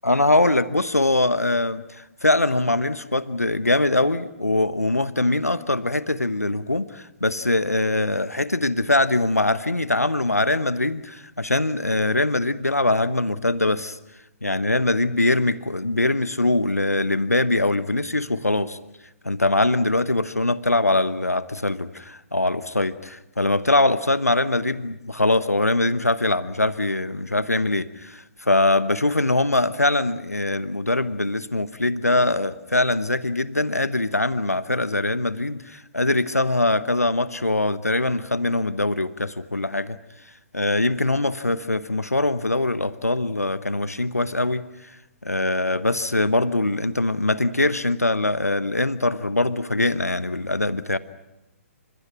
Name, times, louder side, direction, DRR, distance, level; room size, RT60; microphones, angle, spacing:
voice 1, 0.0-14.0 14.4-18.8 19.2-40.0 40.5-45.0 45.2-51.0, left 2 dB, 90° left, 14 dB, 1.1 m, -22 dB
28.5 x 25.5 x 6.1 m, 0.91 s
figure-of-eight pair, 125°, 8 cm